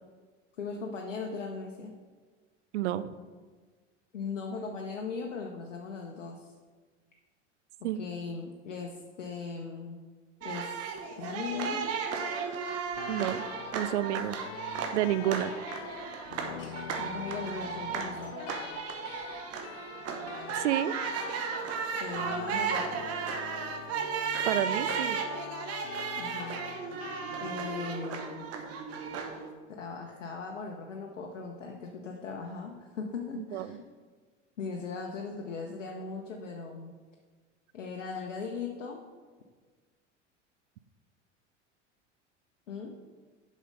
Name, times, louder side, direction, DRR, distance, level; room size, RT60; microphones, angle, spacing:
voice 1, 0.6-1.9 4.1-6.5 7.8-10.0 10.4-10.7 11.1-12.0 17.0-18.4 21.9-23.0 26.2-26.6 27.4-28.5 29.7-33.8 34.6-36.9 37.7-39.0 42.7-43.0, left 4 dB, 80° left, 2 dB, 0.9 m, -38 dB
voice 2, 2.7-3.1 7.8-8.0 13.1-13.4 13.7-14.4 14.9-15.5 20.5-20.9 24.5-25.2 33.4-33.8, right 13 dB, 70° right, 15 dB, 0.5 m, -30 dB
sound 1, 10.4-29.5, right 5 dB, 40° right, 1.1 m, -35 dB
sound 2, 12.9-27.5, left 11 dB, 60° left, 0.5 m, -45 dB
sound 3, 14.9-15.4 15.8-15.9 16.5-22.4, left 4 dB, 30° left, 1.9 m, -49 dB
6.9 x 5.3 x 5.4 m, 1.4 s
figure-of-eight pair, 75°, 37 cm